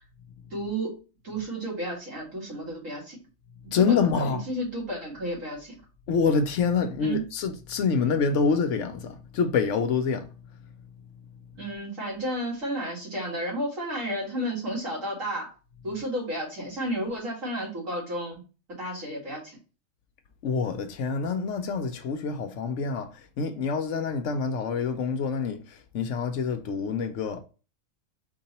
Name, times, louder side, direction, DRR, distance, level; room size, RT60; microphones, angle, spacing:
voice 1, 0.5-1.0 1.2-3.2 3.7-5.7 7.0-7.2 11.5-15.5 15.8-18.4 18.8-19.6, right 1 dB, 80° right, 2.6 m, -32 dB
voice 2, 3.7-4.4 6.1-10.3 20.4-27.4, left 5 dB, 70° left, 1.0 m, -26 dB
4.5 x 2.9 x 4.1 m
omnidirectional pair, 1.4 m